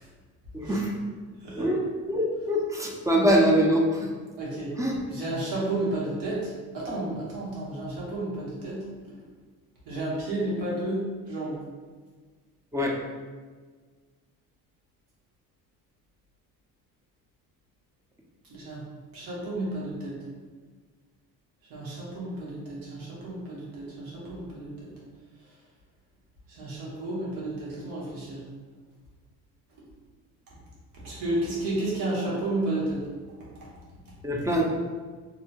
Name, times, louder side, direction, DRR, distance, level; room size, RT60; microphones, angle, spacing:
voice 1, 0.5-0.9 1.6-4.1 4.8-4.9 12.7-13.0 34.2-34.7, equal, 10° right, -1 dB, 0.4 m, -24 dB
voice 2, 4.4-4.7 5.1-8.8 9.9-11.0 11.3-11.6 18.5-18.8 19.1-20.2 21.7-24.9 26.5-28.4 31.0-33.0, right 2 dB, 85° right, -6 dB, 1.2 m, -32 dB
2.8 x 2.2 x 2.8 m, 1.5 s
cardioid pair, 100°, 35 cm